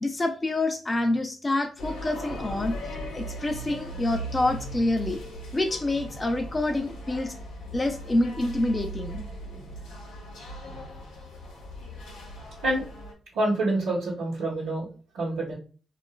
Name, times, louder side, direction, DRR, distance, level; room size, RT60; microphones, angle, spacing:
voice 1, 0.0-2.7 3.1-5.2 5.5-7.3 7.7-9.2, left 2 dB, 30° left, 5 dB, 0.4 m, -27 dB
sound 1, 1.8-13.1, equal, 90° left, 0.8 m, -38 dB
voice 2, 13.3-14.9 15.1-15.6, right 2 dB, 85° right, -7 dB, 0.8 m, -27 dB
2.8 x 2.3 x 2.2 m, 0.38 s
supercardioid pair, 45°, 0 cm